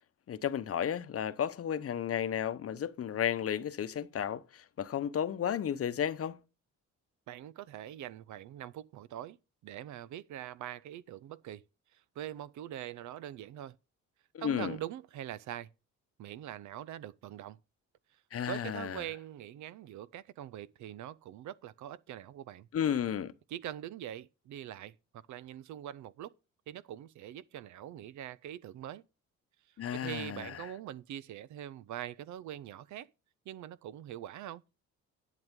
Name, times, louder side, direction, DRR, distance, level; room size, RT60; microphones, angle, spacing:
voice 1, 0.3-6.4 14.3-14.8 18.3-19.0 22.7-23.3 29.8-30.5, left 9 dB, 50° left, 0.9 m, -33 dB
voice 2, 7.3-9.4 9.6-11.6 11.9-13.8 14.4-15.7 16.2-17.6 18.5-22.7 23.5-24.9 25.3-26.3 26.7-29.0 29.9-33.1 33.5-34.6, right 11 dB, 70° right, 0.6 m, -43 dB
10.5 x 9.2 x 3.6 m
cardioid pair, 90°, 30 cm